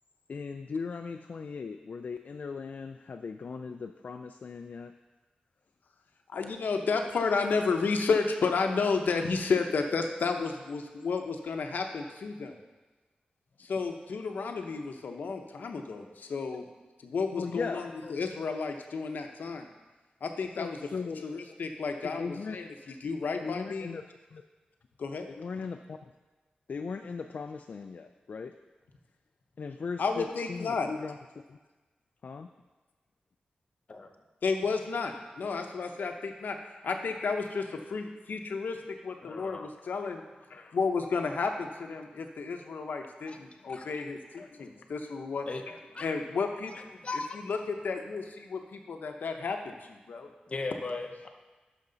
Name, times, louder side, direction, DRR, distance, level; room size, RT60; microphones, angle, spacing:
voice 1, 0.3-4.9 17.3-18.1 20.6-21.2 22.0-22.6 23.4-24.0 24.3-24.4 25.3-26.0 26.7-28.5 29.6-31.2 31.5-31.6 32.2-32.5, left 5 dB, 60° left, 6 dB, 0.4 m, -38 dB
voice 2, 6.3-12.5 13.6-16.6 17.0-19.7 20.2-20.8 21.2-22.7 23.0-23.9 25.0-25.3 30.0-30.9 34.4-36.6 36.8-38.8 39.0-40.2 40.5-47.0 47.4-50.3, left 4 dB, 90° left, 4 dB, 0.8 m, -32 dB
voice 3, 39.2-39.6 42.2-42.3 43.3-43.4 43.7-43.9 44.4-44.9 45.5-45.6 45.9-46.1 47.0-47.5 50.5-51.3, left 3 dB, 40° left, 4 dB, 0.7 m, -38 dB
11.0 x 6.1 x 3.9 m, 1.2 s
wide cardioid pair, 130°, 3 cm